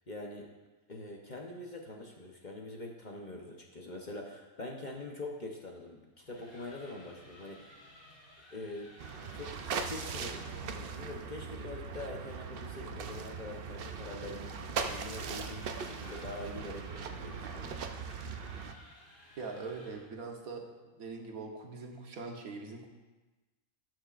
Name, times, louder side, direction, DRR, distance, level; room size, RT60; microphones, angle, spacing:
voice 1, 0.1-0.5 0.9-6.0 6.3-7.7 8.5-8.9 9.3-18.0, left 2 dB, 40° left, 0 dB, 0.9 m, -44 dB
sound 1, 6.0-10.4 13.0-20.2, left 1 dB, 80° left, 3.4 m, -57 dB
sound 2, 9.0-18.7, right 5 dB, 60° right, 0.6 m, -40 dB
voice 2, 19.4-20.7 21.0-22.9, right 4 dB, 80° right, 2 dB, 1.5 m, -42 dB
18.5 x 6.1 x 2.5 m, 1.2 s
omnidirectional pair, 1.5 m